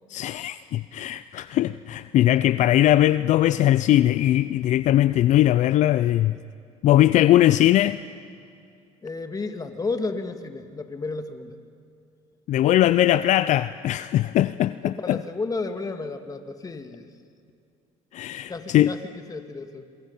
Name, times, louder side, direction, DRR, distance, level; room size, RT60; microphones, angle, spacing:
voice 1, 0.1-6.4 6.8-8.0 12.5-15.2 18.1-18.9, left 13 dB, 60° left, 14 dB, 0.5 m, -20 dB
voice 2, 9.0-11.6 14.8-17.1 18.5-19.9, left 3 dB, 25° left, 7 dB, 2.1 m, -32 dB
26.5 x 23.5 x 5.6 m, 2.5 s
supercardioid pair, 85°, 14 cm